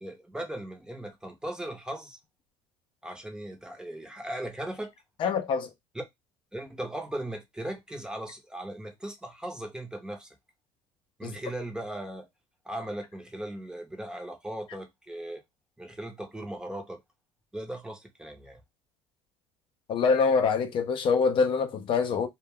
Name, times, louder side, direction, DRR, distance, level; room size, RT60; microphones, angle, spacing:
voice 1, 0.0-2.2 3.0-4.9 5.9-6.0 6.5-10.4 11.2-12.3 12.6-15.4 15.8-17.0 17.5-18.6, right 1 dB, 5° right, 0.7 m, -38 dB
voice 2, 5.2-5.7 11.2-11.3 19.9-22.3, left 5 dB, 45° left, 0.5 m, -25 dB
2.2 x 2.1 x 3.4 m
supercardioid pair, 100°, 12 cm